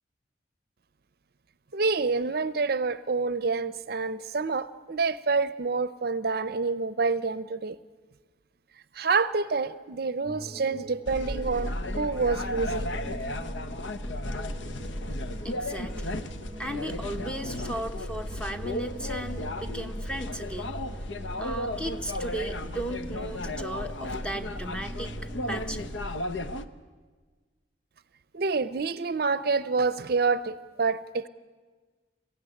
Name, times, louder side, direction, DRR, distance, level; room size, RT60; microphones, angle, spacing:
voice 1, 1.7-7.8 9.0-12.9 28.3-31.3, right 4 dB, 55° right, 15 dB, 0.6 m, -27 dB
sound 1, 10.2-26.0, right 2 dB, 25° right, 1.0 m, -44 dB
sound 2, 11.1-26.6, left 1 dB, 85° left, 1.0 m, -34 dB
voice 2, 15.4-16.2 16.6-20.8 21.4-25.1 25.5-25.9, right 1 dB, 5° left, 6 dB, 0.9 m, -36 dB
22.5 x 15.5 x 10.0 m, 1.4 s
head